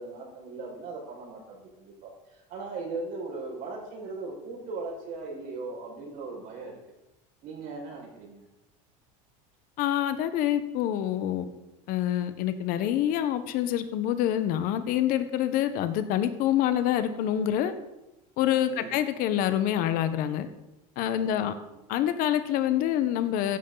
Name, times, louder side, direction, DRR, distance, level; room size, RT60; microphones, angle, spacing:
voice 1, 0.0-6.8 7.4-8.4 18.7-19.0 21.1-21.7, right 3 dB, 50° right, -1 dB, 5.5 m, -39 dB
voice 2, 9.8-11.4 11.9-17.7 18.4-20.5 21.0-21.5 21.9-23.6, left 11 dB, 55° left, 11 dB, 1.1 m, -26 dB
15.5 x 11.0 x 4.0 m, 0.93 s
supercardioid pair, 140°, 18 cm